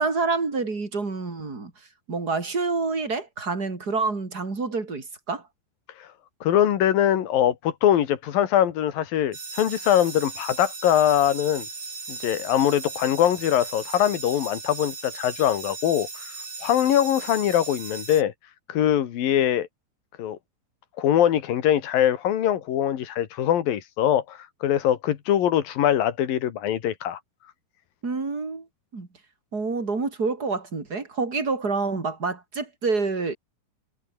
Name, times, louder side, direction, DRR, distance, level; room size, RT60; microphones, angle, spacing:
voice 1, 0.0-1.7 2.1-5.4 28.0-28.7 28.9-29.1 29.5-33.4, right 4 dB, 25° right, 4.3 m, -27 dB
voice 2, 6.4-11.7 12.1-18.3 18.7-19.7 20.2-20.4 21.0-27.2, left 10 dB, 90° left, 3.6 m, -22 dB
sound 1, 9.3-18.2, right 4 dB, 50° right, 7.4 m, -37 dB
omnidirectional pair, 3.9 m